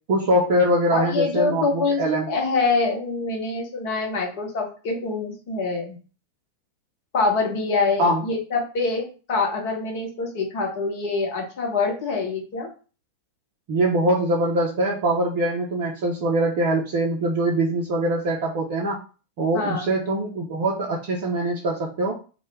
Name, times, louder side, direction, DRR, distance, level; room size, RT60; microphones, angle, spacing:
voice 1, 0.1-2.3 8.0-8.2 13.7-19.0 19.4-22.1, right 1 dB, 50° right, -2 dB, 0.5 m, -23 dB
voice 2, 0.9-6.0 7.1-12.7 19.5-19.9, left 3 dB, 50° left, 0 dB, 0.8 m, -25 dB
2.1 x 2.1 x 3.2 m, 0.36 s
figure-of-eight pair, 90°, 0 cm